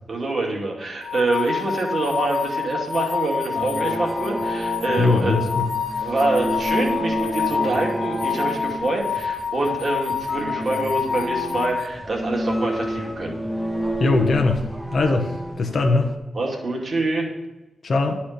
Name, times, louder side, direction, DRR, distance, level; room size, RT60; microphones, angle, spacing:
voice 1, 0.1-5.4 6.0-13.5 16.3-17.3, right 2 dB, 40° right, -1 dB, 2.3 m, -25 dB
sound 1, 1.0-11.9, left 7 dB, 80° left, 0.7 m, -27 dB
sound 2, 3.5-16.1, equal, ahead, 0.6 m, -30 dB
voice 2, 5.0-5.7 6.0-6.1 14.0-14.6 14.9-16.1 17.8-18.2, left 3 dB, 45° left, 3 dB, 1.0 m, -21 dB
11.0 x 4.3 x 6.5 m, 1.1 s
wide cardioid pair, 145°, 0 cm